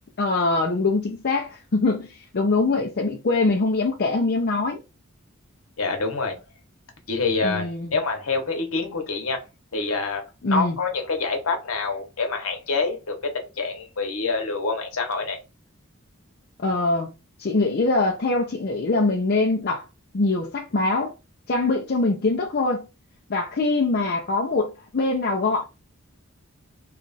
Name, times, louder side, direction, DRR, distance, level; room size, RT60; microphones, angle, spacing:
voice 1, 0.2-4.8 7.4-7.9 10.4-10.8 16.6-17.1 17.4-19.9 20.1-21.1 21.5-22.8 23.3-25.6, left 3 dB, 50° left, 0.5 m, -23 dB
voice 2, 5.8-6.4 7.1-15.4, left 4 dB, 75° left, 1.0 m, -27 dB
3.0 x 2.4 x 4.0 m
head